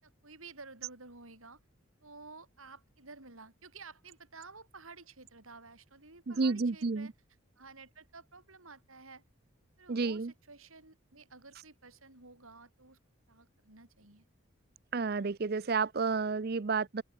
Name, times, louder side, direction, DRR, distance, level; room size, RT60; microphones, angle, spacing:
voice 1, 0.0-1.6 2.0-7.1 7.6-9.2 9.8-13.0 13.3-14.2, right 3 dB, 80° right, 7.3 m, -52 dB
voice 2, 6.3-7.1 9.9-10.3 14.9-17.0, right 4 dB, 45° right, 0.5 m, -31 dB
open air
head